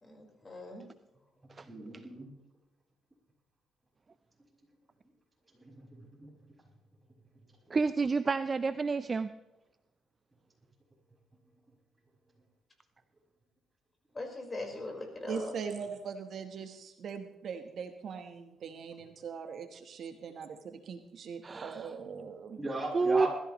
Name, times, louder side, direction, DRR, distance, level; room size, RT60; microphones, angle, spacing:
voice 1, 0.0-0.8 14.1-15.5, left 2 dB, 25° left, 2 dB, 4.5 m, -41 dB
voice 2, 1.6-2.3 5.6-6.3 22.6-23.3, right 2 dB, 15° right, -2 dB, 5.9 m, -38 dB
voice 3, 7.7-9.3 21.4-21.9 22.9-23.3, right 4 dB, 35° right, 12 dB, 0.5 m, -29 dB
voice 4, 15.3-22.7, right 6 dB, 60° right, 7 dB, 1.1 m, -41 dB
21.0 x 14.0 x 3.1 m, 0.98 s
cardioid pair, 90°, 0 cm